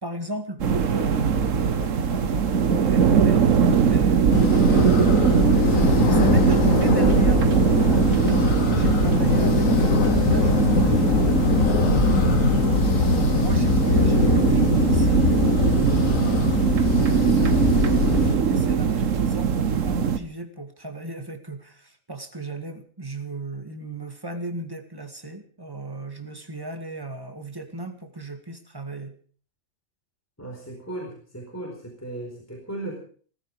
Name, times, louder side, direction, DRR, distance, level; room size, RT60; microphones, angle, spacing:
voice 1, 0.0-4.9 5.7-11.3 12.1-12.8 13.3-15.3 15.7-29.1, right 2 dB, 15° right, 7 dB, 2.0 m, -36 dB
sound 1, 0.6-20.2, right 7 dB, 75° right, 1.5 m, -21 dB
sound 2, 1.8-4.1 4.3-5.6 6.2-8.1 8.5-11.7, left 1 dB, 60° left, 4.3 m, -42 dB
sound 3, 4.3-18.4, left 6 dB, 85° left, 1.5 m, -22 dB
voice 2, 30.4-32.9, right 1 dB, 10° left, 0 dB, 4.3 m, -36 dB
18.0 x 15.0 x 4.9 m, 0.43 s
omnidirectional pair, 1.4 m